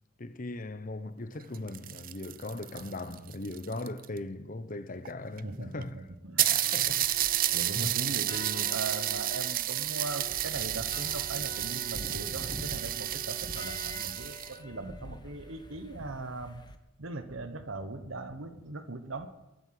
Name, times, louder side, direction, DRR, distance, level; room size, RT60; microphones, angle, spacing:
voice 1, 0.2-5.9 6.4-7.2 7.7-8.0, left 2 dB, 45° left, 1.0 m, -39 dB
sound 1, 1.4-4.2 5.1-5.2 5.4-5.5 5.8-5.9 6.4-14.6, right 13 dB, 45° right, 0.5 m, -31 dB
voice 2, 5.4-6.5 7.5-16.6 17.0-19.3, right 2 dB, 90° right, 1.3 m, -39 dB
sound 2, 6.8-16.8, left 1 dB, 20° left, 1.1 m, -46 dB
21.0 x 8.2 x 7.8 m
head